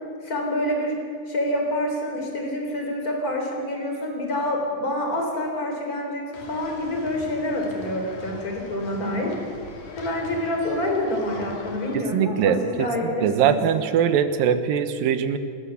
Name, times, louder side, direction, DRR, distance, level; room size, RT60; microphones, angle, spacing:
voice 1, 0.2-0.9 1.3-6.2 6.5-9.3 10.0-13.6, left 1 dB, 25° left, 1 dB, 3.8 m, -27 dB
sound 1, 6.3-12.0, left 2 dB, 75° left, 4.2 m, -41 dB
voice 2, 11.9-15.4, right 8 dB, 85° right, 10 dB, 2.9 m, -22 dB
28.5 x 13.5 x 7.0 m, 2.2 s
omnidirectional pair, 4.0 m